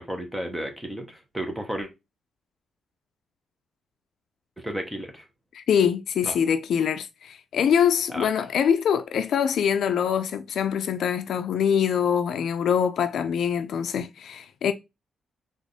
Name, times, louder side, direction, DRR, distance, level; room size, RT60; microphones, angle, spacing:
voice 1, 0.0-1.9 4.6-5.3 6.2-6.4 8.1-8.3, equal, 5° right, 1.0 m, -33 dB
voice 2, 5.5-14.7, left 8 dB, 65° left, 0.4 m, -24 dB
3.5 x 3.5 x 4.1 m
cardioid pair, 150°, 0 cm